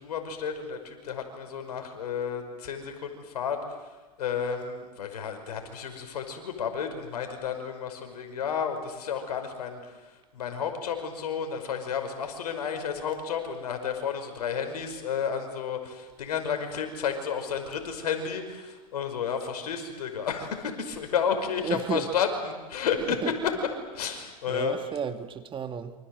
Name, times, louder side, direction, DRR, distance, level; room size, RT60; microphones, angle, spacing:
voice 1, 0.0-3.6 4.2-9.8 10.1-23.2 23.4-23.5 23.9-24.8, left 7 dB, 80° left, 5.6 m, -31 dB
voice 2, 21.6-22.1 23.2-23.3 24.5-25.9, right 7 dB, 25° right, 2.0 m, -33 dB
28.0 x 26.0 x 8.0 m
hypercardioid pair, 110°, 20 cm